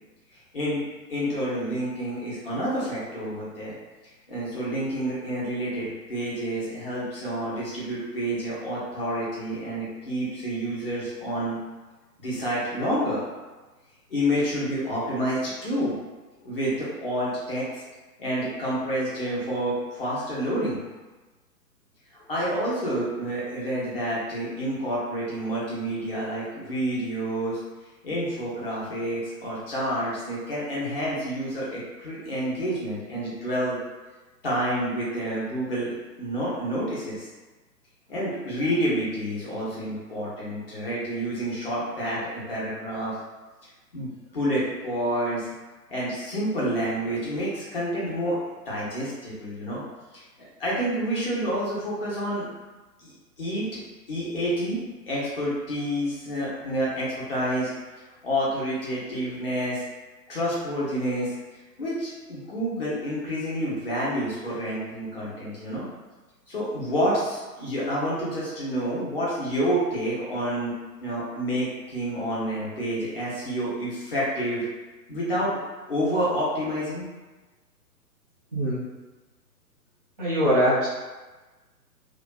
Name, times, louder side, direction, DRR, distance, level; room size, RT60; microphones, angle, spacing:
voice 1, 1.1-3.7 4.3-11.6 12.2-13.2 14.1-16.0 16.4-17.8 18.2-20.8 22.3-27.6 28.0-33.8 34.4-37.2 38.1-43.2 43.9-45.5 45.9-48.4 48.7-49.8 50.6-52.5 53.0-53.1 53.4-53.7 54.1-57.7 58.2-59.8 60.3-61.3 61.8-65.8 66.5-70.7 71.0-74.6 75.1-75.5 75.9-77.0, equal, 35° left, -7 dB, 0.9 m, -28 dB
voice 2, 78.5-78.9 80.2-80.9, equal, 10° right, -11 dB, 0.6 m, -22 dB
2.4 x 2.2 x 2.3 m, 1.2 s
figure-of-eight pair, 130°, 49 cm